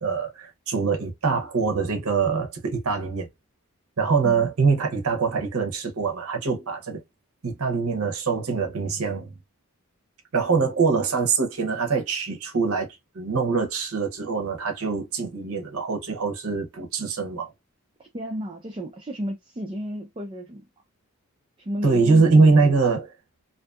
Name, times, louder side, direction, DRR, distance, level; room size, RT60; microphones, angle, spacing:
voice 1, 0.0-3.3 4.0-7.0 7.4-9.3 10.3-12.9 13.1-17.5 21.8-23.1, right 4 dB, 75° right, 0.7 m, -23 dB
voice 2, 18.0-20.7 21.6-22.8, equal, 25° right, 0.4 m, -33 dB
2.6 x 2.4 x 2.3 m
head